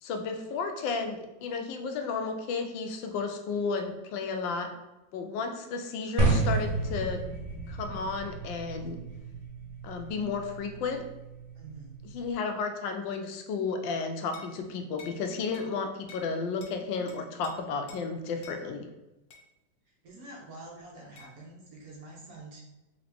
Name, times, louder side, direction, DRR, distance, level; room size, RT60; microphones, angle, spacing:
voice 1, 0.0-4.7 5.1-7.2 7.7-9.0 9.8-11.0 12.1-18.9, left 4 dB, 80° left, 5 dB, 1.3 m, -33 dB
sound 1, 6.2-12.3, right 3 dB, 85° right, 1.6 m, -32 dB
voice 2, 11.5-12.0 20.0-22.6, right 2 dB, 60° right, -2 dB, 1.1 m, -47 dB
sound 2, 14.3-14.6 15.0-15.2 15.5-15.7 16.1-16.3 16.6-16.8 17.1-17.5 17.9-18.1 18.4-18.6 19.3-19.5 21.2-21.3, left 4 dB, 65° left, 1.0 m, -50 dB
3.8 x 3.2 x 3.4 m, 0.99 s
omnidirectional pair, 2.0 m